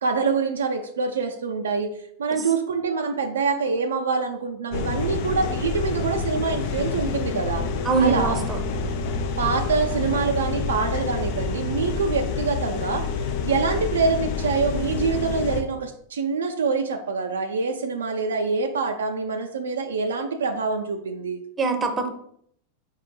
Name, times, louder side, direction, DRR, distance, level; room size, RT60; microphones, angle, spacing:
voice 1, 0.0-1.9 2.2-7.6 8.0-8.4 9.4-13.0 13.4-21.4, right 4 dB, 65° right, 5 dB, 0.4 m, -25 dB
sound 1, 4.7-15.6, left 4 dB, 50° left, 0.5 m, -28 dB
voice 2, 7.8-8.6 21.6-22.1, right 4 dB, 20° right, 5 dB, 0.7 m, -23 dB
4.8 x 4.6 x 2.3 m, 0.68 s
figure-of-eight pair, 90°, 0 cm